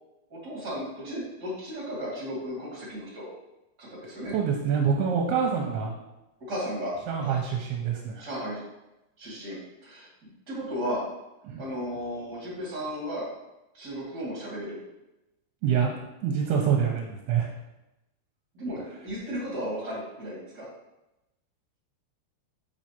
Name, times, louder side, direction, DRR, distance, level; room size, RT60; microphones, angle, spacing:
voice 1, 0.3-3.3 3.8-4.3 6.5-6.9 7.2-7.4 8.2-8.6 9.2-11.0 11.6-13.3 13.7-14.8 18.5-20.7, equal, 30° right, -6 dB, 2.1 m, -35 dB
voice 2, 4.3-5.9 7.1-8.3 11.4-11.6 15.6-15.9 16.2-17.5, right 7 dB, 80° right, 1 dB, 2.6 m, -26 dB
6.8 x 6.3 x 2.9 m, 0.94 s
omnidirectional pair, 4.8 m